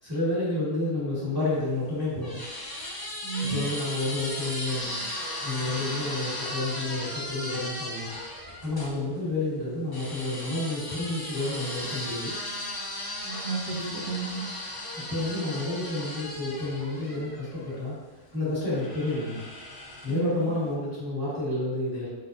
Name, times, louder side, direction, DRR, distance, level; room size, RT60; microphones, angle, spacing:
voice 1, 0.0-2.4 3.4-5.0 5.4-8.1 8.6-12.3 15.1-17.9 18.3-19.4 20.0-22.1, left 2 dB, 15° right, -13 dB, 1.5 m, -30 dB
sound 1, 1.6-8.9 9.9-17.8 18.7-20.3, left 1 dB, 30° left, 0.4 m, -36 dB
voice 2, 3.2-3.6 13.2-14.4 20.1-20.5, right 4 dB, 80° right, -3 dB, 1.2 m, -32 dB
4.2 x 3.8 x 2.6 m, 1.2 s
omnidirectional pair, 1.6 m